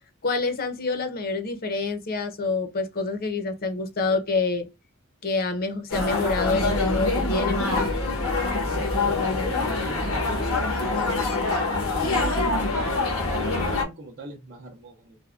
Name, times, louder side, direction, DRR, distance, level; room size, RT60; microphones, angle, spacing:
voice 1, 0.2-4.7 5.2-7.9, left 3 dB, 45° left, 0.6 m, -27 dB
sound 1, 5.9-13.8, left 3 dB, 90° left, 0.9 m, -25 dB
voice 2, 9.3-10.5 10.8-11.1 11.7-15.2, right 2 dB, 45° right, 0.6 m, -40 dB
3.4 x 2.1 x 2.3 m
head